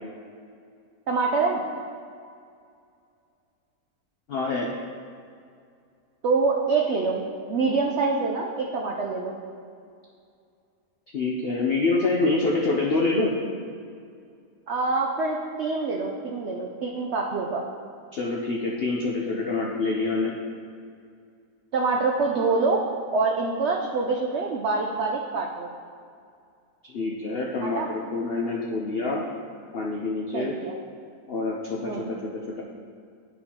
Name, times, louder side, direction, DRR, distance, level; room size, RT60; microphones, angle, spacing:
voice 1, 1.1-1.6 6.2-9.4 14.7-17.6 21.7-22.8 23.1-25.7 27.6-27.9 30.3-30.7 31.8-32.1, right 4 dB, 85° right, 0 dB, 0.6 m, -25 dB
voice 2, 4.3-4.7 11.1-13.3 18.1-20.3 26.8-29.2 29.7-30.5 31.3-32.6, left 3 dB, 90° left, -2 dB, 0.5 m, -26 dB
11.0 x 4.4 x 2.8 m, 2.3 s
omnidirectional pair, 1.8 m